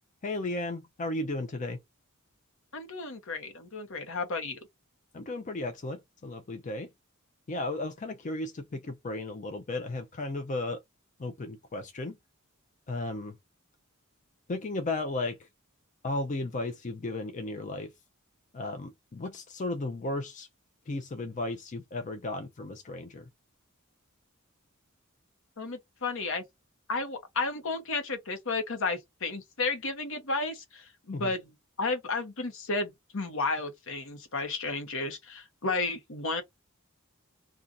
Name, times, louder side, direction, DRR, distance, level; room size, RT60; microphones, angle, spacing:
voice 1, 0.2-1.8 5.1-6.9 7.5-10.8 11.2-12.2 12.9-13.4 14.5-15.5 16.0-17.9 18.5-20.5 20.9-23.3 31.1-31.3, left 2 dB, 35° left, 0.5 m, -34 dB
voice 2, 2.7-4.6 25.6-26.4 26.9-31.5 31.8-36.4, left 3 dB, 65° left, 1.0 m, -32 dB
2.5 x 2.4 x 4.0 m
head